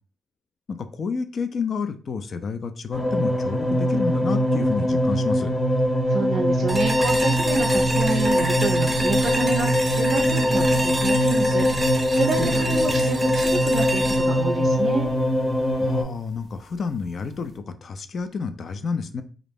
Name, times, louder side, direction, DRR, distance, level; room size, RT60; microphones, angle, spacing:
voice 1, 0.7-5.5 12.4-12.7 15.8-19.2, left 5 dB, 55° left, 10 dB, 0.3 m, -30 dB
sound 1, 2.9-16.0, equal, 25° left, 0.7 m, -22 dB
voice 2, 6.1-15.1, right 4 dB, 70° right, 2 dB, 0.4 m, -29 dB
sound 2, 6.7-15.7, right 1 dB, 15° right, 0.7 m, -29 dB
2.4 x 2.0 x 3.3 m, 0.38 s
cardioid pair, 70°, 0 cm